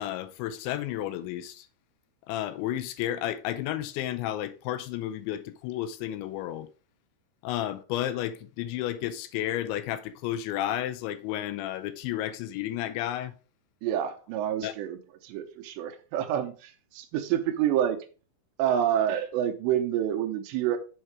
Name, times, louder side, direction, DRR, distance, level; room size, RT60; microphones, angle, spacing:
voice 1, 0.0-1.7 2.3-6.7 7.4-13.3 14.6-14.7, left 12 dB, 80° left, 2.9 m, -32 dB
voice 2, 13.8-18.0 18.6-20.8, right 10 dB, 80° right, 2.7 m, -28 dB
7.3 x 5.5 x 4.7 m
omnidirectional pair, 5.6 m